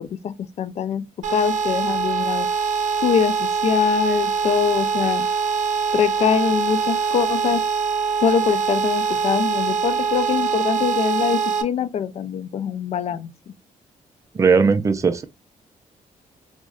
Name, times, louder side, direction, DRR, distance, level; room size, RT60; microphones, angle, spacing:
voice 1, 0.0-2.5 3.0-5.3 5.9-7.6 8.2-13.5, left 7 dB, 50° left, 0.4 m, -23 dB
sound 1, 1.2-11.6, right 5 dB, 65° right, 0.7 m, -23 dB
voice 2, 14.3-15.2, right 5 dB, 20° right, 0.4 m, -18 dB
4.7 x 2.1 x 2.3 m
wide cardioid pair, 165°, 14 cm